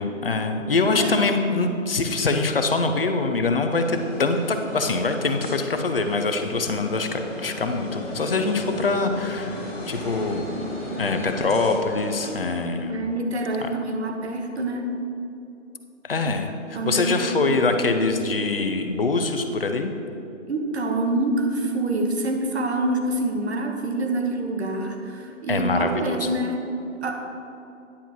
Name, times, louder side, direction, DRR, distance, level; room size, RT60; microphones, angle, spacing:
voice 1, 0.0-10.4 11.0-13.0 13.6-13.7 16.1-19.9 25.5-26.4, left 3 dB, 45° left, 6 dB, 0.6 m, -24 dB
sound 1, 3.7-12.3, equal, 5° right, 0.7 m, -35 dB
voice 2, 12.9-14.9 16.7-17.3 17.6-18.0 20.5-26.7 27.0-27.1, right 2 dB, 55° right, 3 dB, 1.1 m, -26 dB
10.0 x 7.0 x 2.9 m, 2.8 s
figure-of-eight pair, 160°, 39 cm